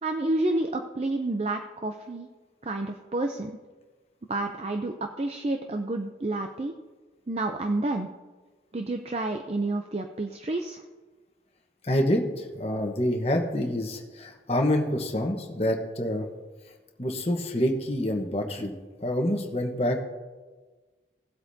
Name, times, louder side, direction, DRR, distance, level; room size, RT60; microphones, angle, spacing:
voice 1, 0.0-2.3 2.6-3.6 4.3-6.7 7.3-8.1 8.7-10.8, right 2 dB, 35° right, 5 dB, 0.5 m, -29 dB
voice 2, 11.8-16.3 17.0-18.7 19.0-20.0, left 1 dB, 35° left, 2 dB, 1.2 m, -27 dB
17.0 x 8.0 x 2.8 m, 1.3 s
head